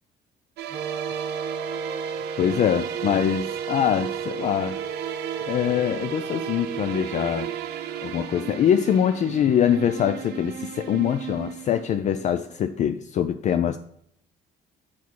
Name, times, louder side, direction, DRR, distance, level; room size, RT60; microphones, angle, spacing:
sound 1, 0.6-12.4, right 10 dB, 75° right, 0.7 m, -35 dB
sound 2, 0.7-8.7, right 6 dB, 30° right, 0.4 m, -34 dB
voice 1, 2.4-4.8 5.5-7.5 8.0-13.8, left 9 dB, 45° left, 0.4 m, -23 dB
6.1 x 5.8 x 4.5 m
cardioid pair, 110°, 17 cm